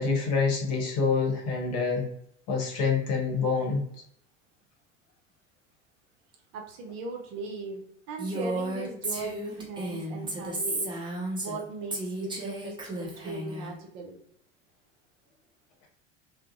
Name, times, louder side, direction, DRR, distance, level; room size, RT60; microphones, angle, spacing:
voice 1, 0.0-2.1 2.5-3.8, left 4 dB, 45° left, -1 dB, 0.9 m, -26 dB
voice 2, 6.5-11.0 11.4-14.2, right 3 dB, 50° right, 1 dB, 0.6 m, -38 dB
Female speech woman speaking, 8.2-11.6 11.9-13.7, right 1 dB, 15° right, 0.6 m, -33 dB
2.4 x 2.0 x 2.6 m, 0.69 s
figure-of-eight pair, 75°, 36 cm